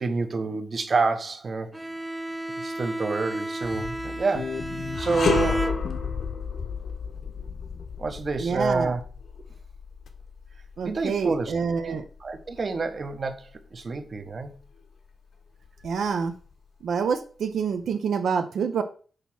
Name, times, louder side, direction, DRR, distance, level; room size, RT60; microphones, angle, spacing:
voice 1, 0.0-1.7 2.6-4.6 5.0-5.7 8.0-9.0 10.8-11.5 11.8-14.5, right 4 dB, 40° right, 0.9 m, -28 dB
Bowed string instrument, 1.7-6.3, right 1 dB, 10° right, 0.4 m, -33 dB
sound 1, 3.6-8.3, left 6 dB, 50° left, 0.4 m, -37 dB
sound 2, 4.9-14.2 14.6-14.8 15.6-16.5, left 5 dB, 70° left, 1.2 m, -33 dB
voice 2, 8.4-8.9 10.8-12.0 15.8-16.3 16.8-18.8, right 6 dB, 80° right, 0.7 m, -27 dB
6.7 x 4.1 x 5.9 m
wide cardioid pair, 125°, 0 cm